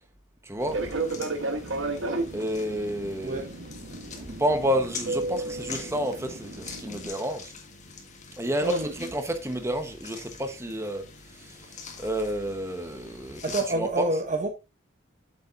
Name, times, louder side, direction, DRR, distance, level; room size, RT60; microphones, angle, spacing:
voice 1, 0.4-0.8 2.3-3.5 4.2-7.5 8.4-11.0 11.3-14.1, equal, 15° right, 1.0 m, -30 dB
sound 1, 0.6-13.6, left 5 dB, 40° left, 1.5 m, -44 dB
Fixed-wing aircraft airplane, 0.6-7.1, right 2 dB, 80° right, 1.1 m, -33 dB
voice 2, 8.6-9.1 13.4-14.5, right 2 dB, 40° right, 0.7 m, -28 dB
8.2 x 6.9 x 2.5 m
head